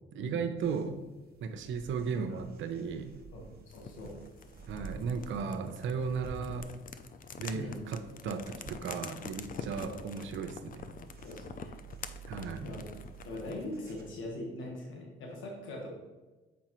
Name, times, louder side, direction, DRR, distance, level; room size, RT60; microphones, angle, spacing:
voice 1, 0.1-1.0 1.4-3.1 4.7-6.7 7.4-10.9 12.3-12.7, right 5 dB, 75° right, 8 dB, 0.7 m, -35 dB
sound 1, 0.6-14.3, right 5 dB, 50° right, 1.0 m, -51 dB
voice 2, 3.7-4.2 7.5-7.8 9.7-9.8 11.2-11.7 12.6-12.8 13.2-15.9, left 1 dB, 80° left, -1 dB, 1.4 m, -41 dB
sound 2, 3.7-13.7, left 6 dB, 45° left, 0.4 m, -47 dB
7.2 x 4.8 x 3.0 m, 1.2 s
cardioid pair, 90°, 20 cm